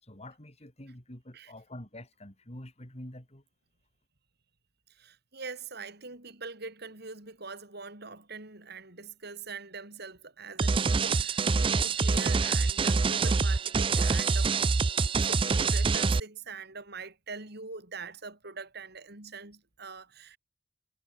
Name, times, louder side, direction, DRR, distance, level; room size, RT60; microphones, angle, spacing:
voice 1, 0.0-3.4, left 1 dB, 35° left, 4.5 m, -46 dB
voice 2, 5.0-14.5 15.1-20.4, right 4 dB, 55° right, 4.9 m, -43 dB
sound 1, 10.6-16.2, right 4 dB, 25° right, 0.4 m, -26 dB
head